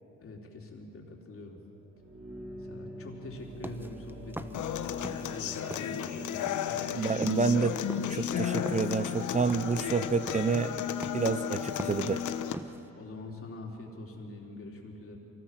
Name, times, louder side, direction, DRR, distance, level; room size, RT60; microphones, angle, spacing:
voice 1, 0.2-1.6 2.7-6.8 13.0-15.2, left 2 dB, 45° left, 0 dB, 3.7 m, -44 dB
sound 1, 1.7-12.3 12.9-13.0, right 1 dB, 55° right, 3.4 m, -48 dB
sound 2, 3.4-5.4 5.7-12.9, right 1 dB, 5° right, 0.9 m, -43 dB
Human voice / Acoustic guitar, 4.5-12.5, left 10 dB, 75° left, 1.0 m, -33 dB
voice 2, 6.9-7.8 8.1-10.8 11.1-12.2, right 5 dB, 25° right, 12 dB, 0.6 m, -28 dB
24.5 x 17.5 x 7.6 m, 2.9 s
cardioid pair, 90°, 30 cm